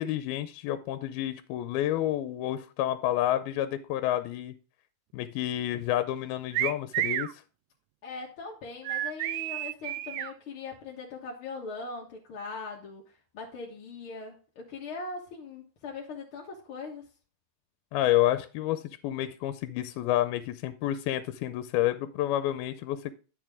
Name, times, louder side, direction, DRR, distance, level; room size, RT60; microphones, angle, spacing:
voice 1, 0.0-4.5 5.1-7.3 17.9-23.1, left 13 dB, 85° left, 12 dB, 2.5 m, -29 dB
sound 1, 6.5-7.3 8.8-10.3, right 14 dB, 90° right, 1.8 m, -30 dB
voice 2, 8.0-13.0 13.3-17.1, left 4 dB, 55° left, -2 dB, 1.5 m, -40 dB
10.5 x 6.6 x 3.6 m, 0.34 s
omnidirectional pair, 4.4 m